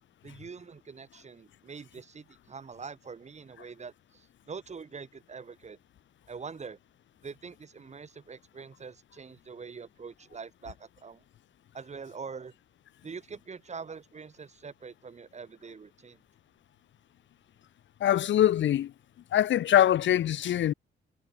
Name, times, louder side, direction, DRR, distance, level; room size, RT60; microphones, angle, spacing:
voice 1, 0.2-5.8 6.3-6.8 7.2-11.2 11.7-12.5 13.0-16.2, right 5 dB, 35° right, 5.3 m, -44 dB
voice 2, 18.0-18.9 19.3-20.7, left 11 dB, 75° left, 1.3 m, -23 dB
cardioid pair, 130°, 20 cm